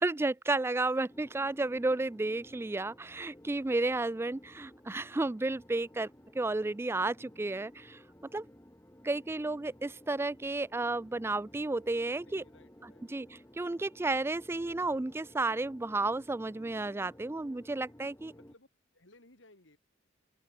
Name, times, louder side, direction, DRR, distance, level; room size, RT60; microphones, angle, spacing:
voice 1, 0.0-8.0 8.3-8.4 9.0-12.4 13.1-18.3, right 2 dB, 10° right, 0.3 m, -32 dB
sound 1, 1.1-18.5, equal, 15° left, 2.7 m, -56 dB
voice 2, 12.1-13.0 18.3-18.7 18.9-19.8, left 2 dB, 65° left, 4.7 m, -60 dB
open air
head